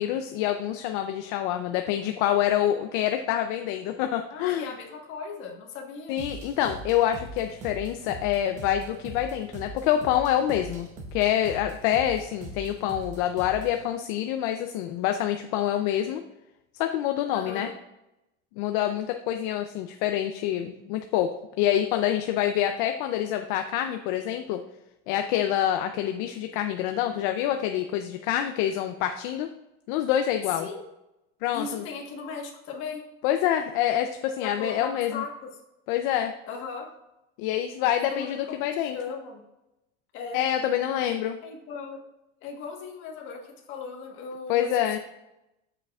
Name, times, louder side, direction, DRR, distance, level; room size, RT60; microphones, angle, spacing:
voice 1, 0.0-4.7 6.1-16.2 16.8-17.7 18.6-21.3 21.6-24.6 25.1-29.5 29.9-30.7 31.4-31.8 33.2-35.2 35.9-36.3 37.4-39.0 40.3-41.4 44.5-45.0, left 11 dB, 60° left, 6 dB, 0.5 m, -26 dB
voice 2, 4.3-6.2 17.3-17.7 30.5-30.8 31.5-33.0 34.4-35.5 36.5-36.9 38.0-39.4 40.1-40.4 41.4-42.0 42.4-44.7, left 5 dB, 45° left, 1 dB, 1.4 m, -37 dB
sound 1, 6.2-13.8, right 2 dB, 25° right, 0.8 m, -41 dB
7.5 x 6.7 x 2.4 m, 0.90 s
cardioid pair, 170°, 29 cm